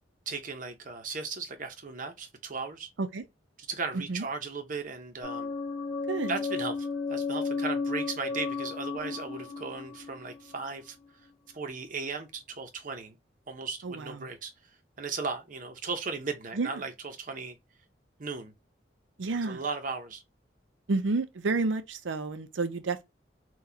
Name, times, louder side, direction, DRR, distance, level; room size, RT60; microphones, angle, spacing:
voice 1, 0.3-2.9 3.7-5.5 6.3-11.0 11.5-13.2 13.5-14.5 15.0-17.6 18.2-18.5 19.4-20.2, right 4 dB, 45° right, 0.7 m, -36 dB
voice 2, 3.9-4.2 6.1-6.3 13.8-14.3 16.6-16.7 19.2-19.6 20.9-23.0, right 3 dB, 90° right, 0.6 m, -30 dB
sound 1, 5.2-11.0, left 4 dB, 5° left, 1.8 m, -33 dB
4.0 x 2.3 x 2.7 m
head